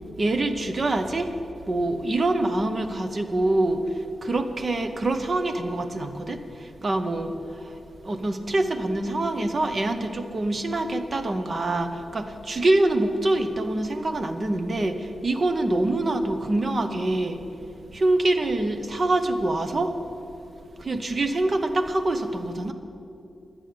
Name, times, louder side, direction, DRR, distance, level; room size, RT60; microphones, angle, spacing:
voice 1, 0.2-1.3 1.7-17.4 17.9-20.1 20.8-22.7, right 2 dB, 35° right, 7 dB, 0.8 m, -25 dB
11.0 x 9.0 x 6.6 m, 2.8 s
wide cardioid pair, 145°, 0 cm